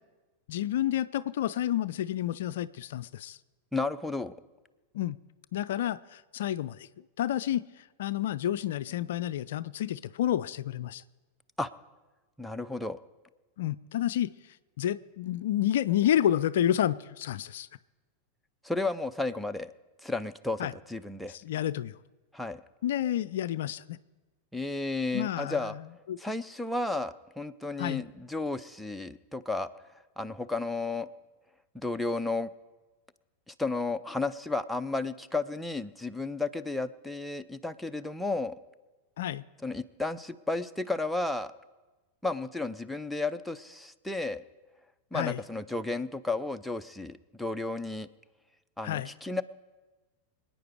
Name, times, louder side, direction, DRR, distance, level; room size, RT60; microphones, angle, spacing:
voice 1, 0.5-3.4 4.9-5.2 5.5-6.9 7.2-7.6 8.0-11.0 13.6-14.3 14.8-17.7 20.6-20.7 21.3-21.9 22.8-24.0 25.1-25.8 26.1-26.2 27.8-28.0 39.2-39.4 45.1-45.4 48.8-49.1, left 11 dB, 55° left, 15 dB, 0.4 m, -29 dB
voice 2, 3.7-4.3 11.6-11.7 12.4-13.0 18.6-19.7 20.0-21.3 22.3-22.6 24.5-25.8 26.2-29.7 30.2-31.1 31.7-32.5 33.5-38.6 39.6-41.5 42.2-44.4 45.1-48.1 48.8-49.4, left 3 dB, 5° left, 8 dB, 0.6 m, -33 dB
26.0 x 9.2 x 4.8 m, 1.2 s
figure-of-eight pair, 90°, 0 cm